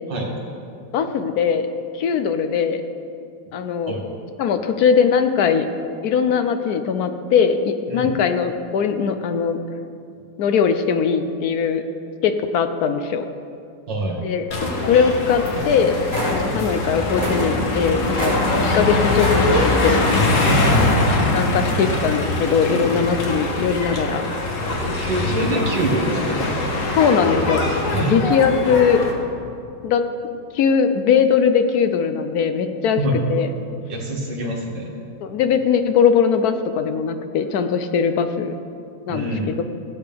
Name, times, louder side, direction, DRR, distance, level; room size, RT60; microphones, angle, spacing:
voice 1, 0.9-1.7 1.9-2.8 3.5-3.9 4.4-5.7 6.0-9.6 10.4-11.8 12.2-13.2 14.2-14.5 14.9-18.4 18.7-20.0 21.3-24.2 27.0-27.6 27.9-29.0 29.8-30.0 30.5-33.5 35.2-38.5 39.1-39.6, left 6 dB, 70° left, 8 dB, 1.0 m, -20 dB
voice 2, 13.9-14.2 20.4-20.7 25.0-26.4 27.9-28.2 33.0-33.1 33.9-34.9 39.1-39.6, right 1 dB, 75° right, -2 dB, 2.5 m, -25 dB
sound 1, 14.5-29.1, left 2 dB, 50° left, 1.4 m, -22 dB
sound 2, 15.2-15.8 16.0-16.8 17.1-19.4 19.8-20.3 20.7-21.0, equal, 20° left, 3.0 m, -27 dB
17.0 x 8.5 x 3.5 m, 2.5 s
omnidirectional pair, 2.0 m